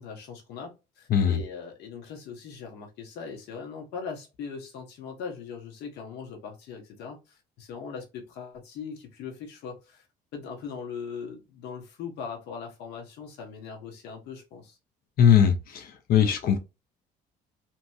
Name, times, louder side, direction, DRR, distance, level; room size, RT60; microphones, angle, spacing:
voice 1, 0.0-10.1 10.3-14.8, left 6 dB, 80° left, 1.0 m, -40 dB
voice 2, 1.1-1.4 15.2-16.6, left 8 dB, 60° left, 0.6 m, -20 dB
2.8 x 2.7 x 2.3 m
cardioid pair, 110°, 17 cm